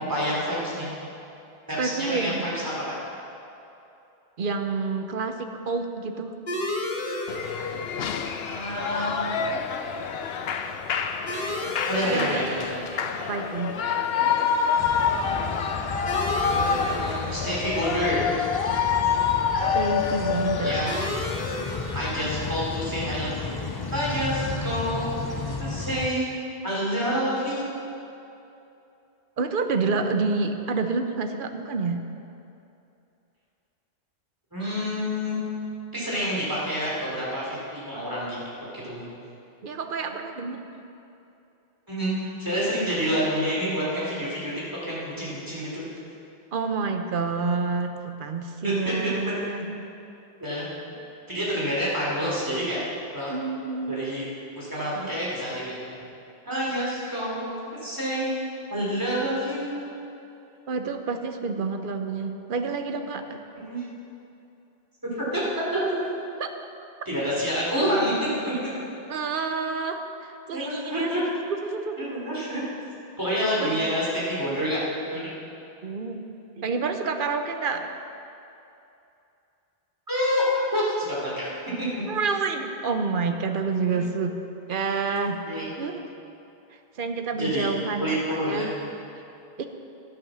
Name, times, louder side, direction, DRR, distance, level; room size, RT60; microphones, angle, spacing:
voice 1, 0.1-0.9 1.7-2.9 8.4-9.2 11.9-13.3 16.4-18.3 20.6-20.9 21.9-26.3 26.6-27.9 34.5-35.4 35.9-38.4 38.7-39.1 41.9-44.5 44.8-45.8 48.6-48.9 50.4-50.7 51.3-52.8 53.1-53.3 53.9-54.3 54.5-56.0 56.4-58.4 58.7-59.9 63.5-63.8 65.1-65.8 67.0-68.7 70.5-71.2 72.0-72.6 73.2-74.8 75.1-75.3 80.1-81.5 81.8-82.0 83.9-84.0 85.4-85.7 87.4-87.7 88.0-88.7, equal, 20° right, -6 dB, 3.1 m, -28 dB
voice 2, 1.8-2.5 4.4-6.3 12.1-12.5 13.3-13.7 19.7-20.9 29.4-32.0 39.6-40.6 46.5-49.9 53.3-54.1 55.0-55.1 60.7-63.4 66.4-66.5 69.1-71.1 71.6-72.1 73.6-73.7 75.8-76.2 76.6-77.9 82.1-84.3 84.7-85.4 85.8-86.1 87.0-88.7 89.6-89.7, right 4 dB, 60° right, 6 dB, 0.9 m, -28 dB
sound 1, 6.5-25.6, left 1 dB, 55° left, 1.4 m, -37 dB
Shout / Cheering, 7.3-21.1, left 6 dB, 75° left, 0.9 m, -27 dB
sound 2, 14.8-26.1, left 4 dB, 35° left, 0.4 m, -33 dB
12.0 x 7.9 x 6.2 m, 2.8 s
omnidirectional pair, 1.0 m